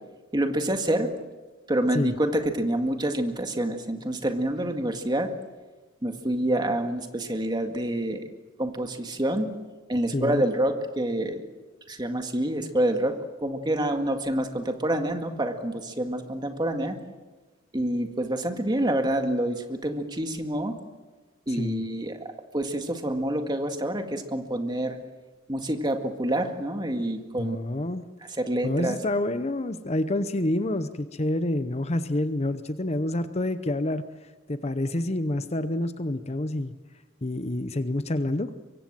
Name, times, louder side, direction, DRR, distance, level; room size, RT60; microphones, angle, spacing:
voice 1, 0.3-1.1 1.7-5.3 6.0-8.2 8.6-9.5 9.9-11.4 11.9-17.0 17.7-20.8 21.5-22.2 22.5-25.0 25.5-27.6 28.4-29.0, right 1 dB, 20° right, 6 dB, 1.9 m, -27 dB
voice 2, 10.1-10.4 21.5-21.8 27.4-28.1 28.6-34.0 34.5-36.7 37.2-38.5, left 1 dB, 35° left, 11 dB, 0.8 m, -28 dB
24.5 x 23.5 x 7.5 m, 1.2 s
head